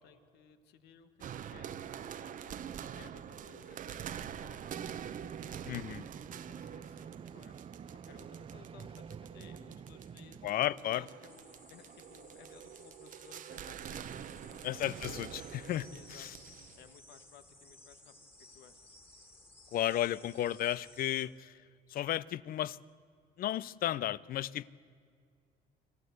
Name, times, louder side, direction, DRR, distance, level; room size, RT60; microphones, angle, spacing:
voice 1, 0.0-1.1 1.5-4.7 5.3-5.7 6.2-7.6 7.9-10.4 10.9-14.6 14.9-15.1 15.9-16.5 16.7-18.1 18.5-18.8, left 8 dB, 80° left, 10 dB, 1.6 m, -59 dB
sound 1, 1.2-16.9, right 9 dB, 50° right, 0.9 m, -46 dB
sound 2, 4.6-10.5, right 7 dB, 35° right, 0.6 m, -49 dB
voice 2, 5.6-6.0 10.4-11.0 14.6-15.9 16.2-16.3 19.7-21.6 21.9-22.8 23.4-24.7, left 12 dB, 60° left, 20 dB, 0.6 m, -33 dB
sound 3, 11.3-21.3, left 2 dB, 10° left, 2.2 m, -58 dB
26.5 x 14.0 x 8.0 m, 2.3 s
cardioid pair, 110°, 17 cm